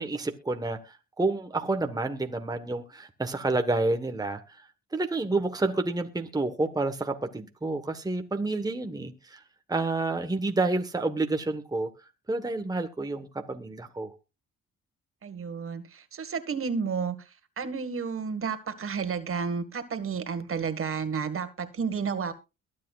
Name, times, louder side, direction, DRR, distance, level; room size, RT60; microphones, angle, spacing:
voice 1, 0.0-9.4 9.7-11.9 12.3-14.1, right 2 dB, 10° right, 1.3 m, -29 dB
voice 2, 15.2-22.3, right 6 dB, 45° right, 1.8 m, -31 dB
22.5 x 8.5 x 2.4 m
cardioid pair, 90°, 30 cm